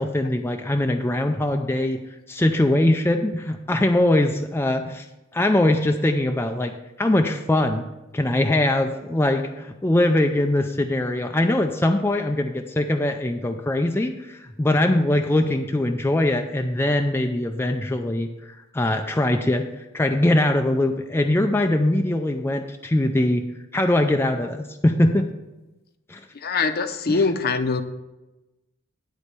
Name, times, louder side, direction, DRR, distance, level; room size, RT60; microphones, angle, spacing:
voice 1, 0.0-2.0 2.3-5.0 5.3-6.7 7.0-7.8 8.1-18.3 18.7-19.6 19.9-23.4 23.7-25.3 26.1-26.2 27.1-27.2, left 1 dB, 10° left, 4 dB, 0.4 m, -22 dB
voice 2, 26.4-27.8, left 4 dB, 50° left, 9 dB, 0.7 m, -23 dB
10.0 x 4.1 x 6.7 m, 1.0 s
head